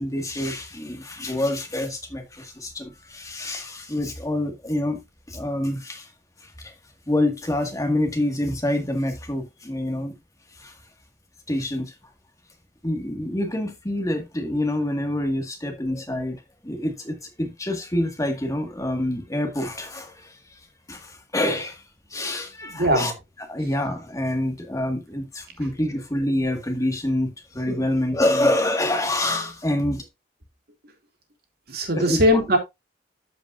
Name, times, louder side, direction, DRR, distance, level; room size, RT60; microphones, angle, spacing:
voice 1, 0.0-6.1 6.4-6.7 7.1-10.2 10.6-10.8 11.5-11.9 12.8-21.8 22.1-23.1 23.5-30.1 32.0-32.2, left 1 dB, 20° left, 1.8 m, -27 dB
voice 2, 22.7-23.1 31.7-32.6, equal, 60° right, 2.5 m, -20 dB
13.5 x 5.3 x 2.5 m
head